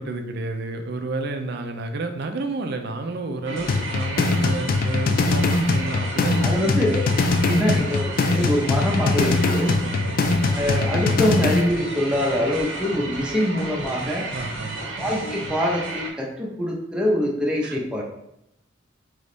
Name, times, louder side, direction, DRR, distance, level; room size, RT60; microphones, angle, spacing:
voice 1, 0.0-6.8 7.4-7.9 9.8-10.2 14.3-14.8 17.6-17.8, right 2 dB, 60° right, 6 dB, 0.5 m, -31 dB
sound 1, 3.4-16.1, right 2 dB, 85° right, 0.9 m, -32 dB
sound 2, 3.7-11.7, left 3 dB, 50° left, 0.3 m, -22 dB
voice 2, 6.4-6.9 7.4-9.7 10.5-14.3 15.0-18.0, left 1 dB, 5° right, -2 dB, 0.8 m, -24 dB
3.5 x 3.1 x 3.9 m, 0.83 s
head